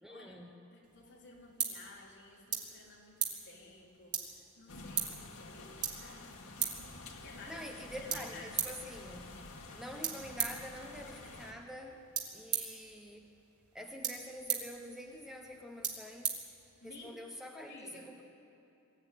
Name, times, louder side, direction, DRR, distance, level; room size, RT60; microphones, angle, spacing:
voice 1, 0.0-0.5 7.5-9.3 9.7-12.0 12.3-13.3 13.7-16.4 16.8-18.2, equal, ahead, 2 dB, 1.0 m, -46 dB
voice 2, 0.7-6.8 7.2-7.7 8.0-8.5 16.8-17.2 17.7-18.0, left 2 dB, 55° left, -3 dB, 4.1 m, -54 dB
sound 1, 0.8-17.1, right 8 dB, 85° right, 2.8 m, -41 dB
sound 2, 4.7-11.5, left 3 dB, 75° left, 2.3 m, -49 dB
22.0 x 14.5 x 9.5 m, 2.9 s
head